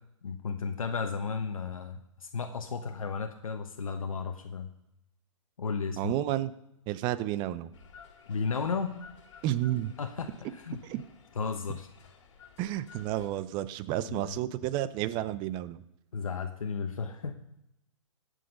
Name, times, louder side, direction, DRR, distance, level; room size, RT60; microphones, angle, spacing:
voice 1, 0.2-4.7 5.6-6.1 8.3-8.9 10.0-10.8 11.4-11.9 14.0-14.4 16.1-17.4, left 5 dB, 85° left, 6 dB, 0.9 m, -34 dB
voice 2, 6.0-6.5 6.9-7.7 9.4-9.9 10.9-11.0 12.6-15.8, right 13 dB, 25° right, 15 dB, 0.6 m, -31 dB
sound 1, 7.7-13.3, left 6 dB, 60° left, 2.3 m, -54 dB
17.0 x 6.4 x 5.3 m, 0.84 s
hypercardioid pair, 135°, 17 cm